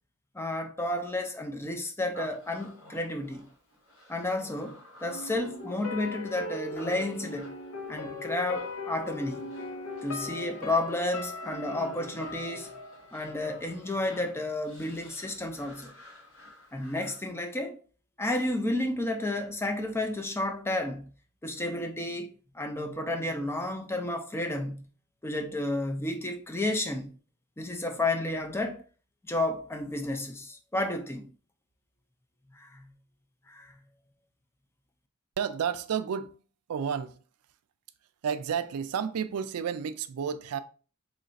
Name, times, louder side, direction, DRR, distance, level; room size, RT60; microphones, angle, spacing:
voice 1, 0.3-3.5 4.1-7.5 7.9-9.4 10.0-12.7 13.1-15.9 16.7-17.8 18.2-21.0 21.4-22.3 22.5-24.8 25.2-27.1 27.6-28.8 29.3-31.3 32.5-32.9 33.5-33.7, left 1 dB, 10° left, 0.5 m, -31 dB
Human voice, 2.1-17.3, left 1 dB, 70° left, 1.5 m, -53 dB
sound 1, 5.1-14.0 14.4-14.5, left 2 dB, 90° left, 0.7 m, -40 dB
voice 2, 35.4-36.4 36.7-37.2 38.2-40.6, right 7 dB, 85° right, 0.4 m, -31 dB
3.2 x 2.4 x 4.0 m
head